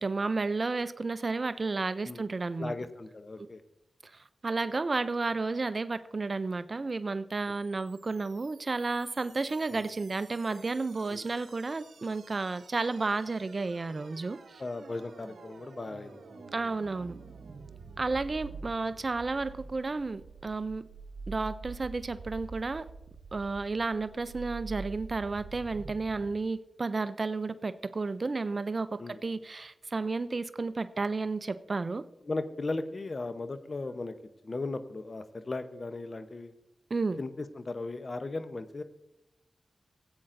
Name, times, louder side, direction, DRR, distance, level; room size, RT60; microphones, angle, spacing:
voice 1, 0.0-2.8 4.0-14.6 16.5-17.2 18.0-20.8 21.3-22.9 23.3-32.0 36.9-37.2, right 3 dB, 50° right, 14 dB, 0.4 m, -32 dB
voice 2, 2.6-3.6 9.7-9.8 11.1-11.2 14.6-16.2 29.0-29.2 32.2-34.1 34.4-36.5 37.2-38.8, left 3 dB, 50° left, 10 dB, 0.8 m, -37 dB
sound 1, 7.4-26.4, right 4 dB, 85° right, 0.8 m, -48 dB
17.0 x 8.7 x 2.6 m, 0.87 s
cardioid pair, 45°, 0 cm